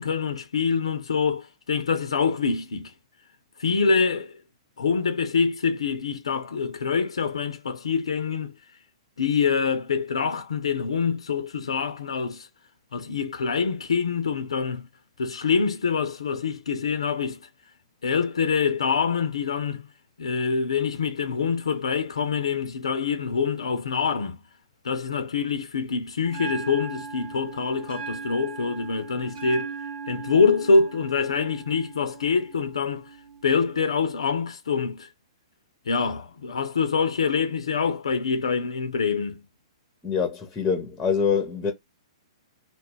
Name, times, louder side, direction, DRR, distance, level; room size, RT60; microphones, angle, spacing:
voice 1, 0.0-2.9 3.6-4.3 4.8-8.5 9.2-12.5 12.9-14.9 15.2-17.4 18.0-19.8 20.2-24.4 24.8-29.7 30.1-33.1 33.4-35.1 35.9-39.4, left 5 dB, 70° left, 0.4 m, -25 dB
Bell, 26.2-34.2, right 5 dB, 60° right, 0.9 m, -39 dB
voice 2, 40.0-41.7, left 6 dB, 15° left, 0.5 m, -25 dB
2.3 x 2.0 x 3.4 m
figure-of-eight pair, 115°, 3 cm